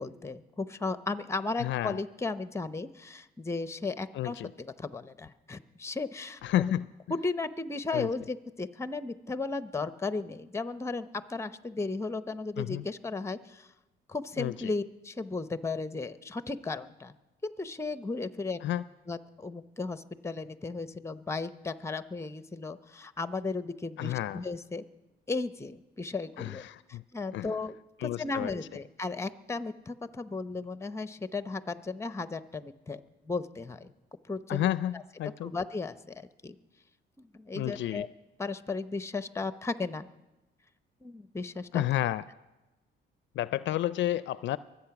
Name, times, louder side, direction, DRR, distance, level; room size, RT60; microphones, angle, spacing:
voice 1, 0.0-6.7 7.1-13.7 14.1-17.1 17.4-18.6 19.1-24.8 25.3-26.6 26.9-27.7 28.0-33.0 33.3-33.9 34.3-35.0 35.4-36.6 37.2-38.1 38.4-40.1 41.0-41.8, left 3 dB, 15° left, 13 dB, 0.7 m, -35 dB
voice 2, 1.6-2.0 4.1-4.5 6.4-6.9 7.9-8.1 12.6-12.8 14.4-14.7 18.6-18.8 24.0-24.4 26.4-27.0 27.3-27.5 28.0-28.5 34.5-35.5 37.5-38.0 41.7-42.2 43.4-44.6, left 13 dB, 65° left, 17 dB, 0.4 m, -31 dB
23.0 x 8.4 x 5.9 m, 1.1 s
cardioid pair, 95°, 20 cm